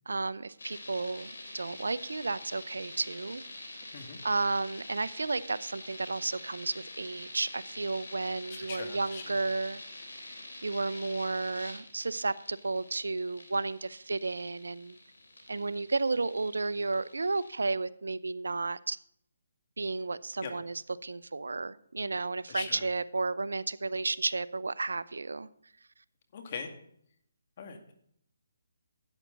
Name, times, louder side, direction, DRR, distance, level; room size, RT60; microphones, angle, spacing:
voice 1, 0.1-3.4 4.2-9.8 10.6-15.0 15.5-19.0 19.8-25.5, right 3 dB, 85° right, 17 dB, 0.6 m, -32 dB
sound 1, 0.6-17.6, left 2 dB, 85° left, 3.7 m, -47 dB
voice 2, 8.5-9.2 20.4-20.5 22.5-22.8 26.3-26.7 27.6-27.9, left 5 dB, 45° left, 5 dB, 2.2 m, -40 dB
12.5 x 9.1 x 3.9 m, 0.69 s
hypercardioid pair, 155°, 0 cm